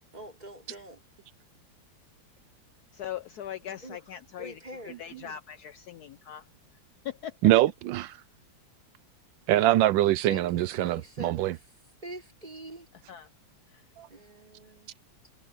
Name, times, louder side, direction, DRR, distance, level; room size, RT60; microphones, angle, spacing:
voice 1, 0.1-1.0 3.8-4.0 4.4-5.0 10.3-11.7 12.0-12.9 14.1-14.9, right 1 dB, 20° right, 4.9 m, -44 dB
voice 2, 2.9-4.6 4.8-6.5 7.0-7.4 13.1-13.3 13.7-13.9, left 10 dB, 65° left, 1.0 m, -40 dB
voice 3, 7.4-8.2 9.5-11.5 14.0-14.1, right 14 dB, 85° right, 1.3 m, -23 dB
omnidirectional pair, 2.0 m